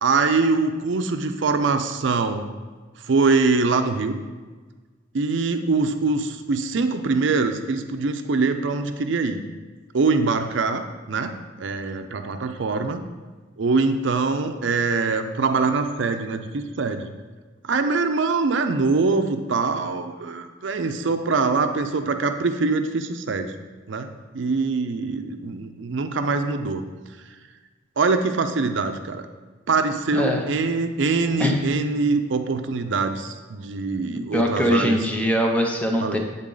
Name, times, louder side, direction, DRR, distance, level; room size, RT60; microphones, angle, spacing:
voice 1, 0.0-2.5 3.1-4.2 5.1-9.4 9.9-11.3 11.6-13.0 13.6-17.1 17.7-23.5 23.9-26.8 28.0-29.3 29.7-35.0 36.0-36.2, right 4 dB, 65° right, 8 dB, 0.5 m, -23 dB
voice 2, 30.1-30.4 31.4-31.6 34.2-36.2, equal, 5° left, 2 dB, 0.6 m, -22 dB
8.7 x 4.0 x 3.8 m, 1.4 s
head